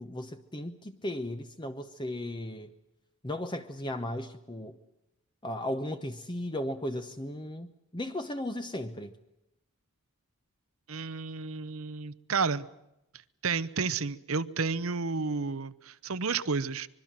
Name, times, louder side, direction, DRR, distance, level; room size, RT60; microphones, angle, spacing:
voice 1, 0.0-2.7 3.2-4.8 5.4-9.1, left 1 dB, 20° left, 8 dB, 0.9 m, -36 dB
voice 2, 10.9-12.7 13.4-16.9, right 4 dB, 70° right, 15 dB, 0.9 m, -31 dB
25.0 x 23.0 x 7.6 m, 0.88 s
head